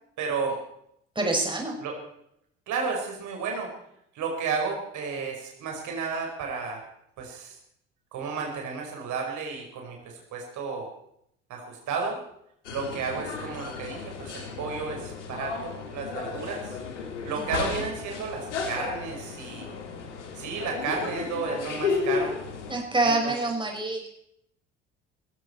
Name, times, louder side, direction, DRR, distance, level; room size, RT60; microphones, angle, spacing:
voice 1, 0.2-0.6 1.8-1.9 2.7-3.7 4.1-6.8 7.2-7.5 8.1-10.9 11.5-12.2 12.7-16.8 17.2-19.7 20.3-22.4 23.0-23.3, right 5 dB, 55° right, 1 dB, 5.1 m, -32 dB
voice 2, 1.2-1.8 17.3-17.8 22.7-24.1, right 2 dB, 15° right, 1 dB, 5.6 m, -27 dB
sound 1, 12.6-22.7, left 5 dB, 80° left, 2.8 m, -33 dB
19.5 x 16.5 x 4.5 m, 0.73 s
figure-of-eight pair, 55°, 35 cm